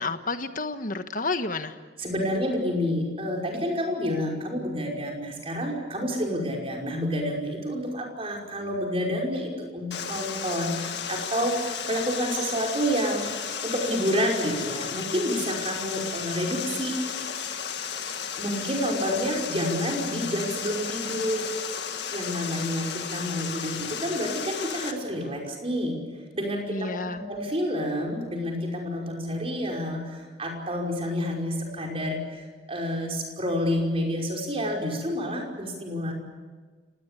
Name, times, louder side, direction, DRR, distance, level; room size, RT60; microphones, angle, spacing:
voice 1, 0.0-1.7 26.7-27.2, left 3 dB, 45° left, 9 dB, 1.4 m, -30 dB
voice 2, 2.0-13.4 13.6-17.0 18.4-21.5 22.1-26.0 26.3-36.1, equal, 30° right, 0 dB, 5.4 m, -29 dB
Water, 9.9-24.9, left 7 dB, 60° left, 2.0 m, -34 dB
30.0 x 18.5 x 8.4 m, 1.4 s
head